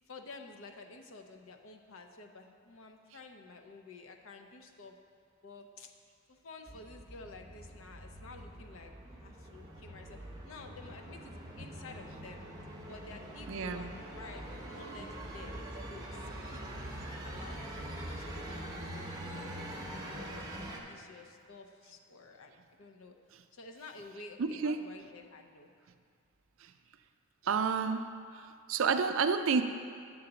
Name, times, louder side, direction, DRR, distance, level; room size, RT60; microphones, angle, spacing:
voice 1, 0.1-5.0 5.4-5.9 6.3-8.9 9.2-10.2 10.4-12.5 12.9-16.6 17.2-17.6 18.2-20.5 20.9-22.5 22.8-23.2 23.5-25.7, left 3 dB, 70° left, 4 dB, 0.6 m, -51 dB
sound 1, 6.7-20.8, right 1 dB, 15° right, 0.8 m, -44 dB
voice 2, 13.5-13.9 24.4-24.8 27.4-28.1 28.3-28.4 28.7-29.6, right 5 dB, 65° right, 8 dB, 0.4 m, -29 dB
8.3 x 4.0 x 6.7 m, 2.3 s
head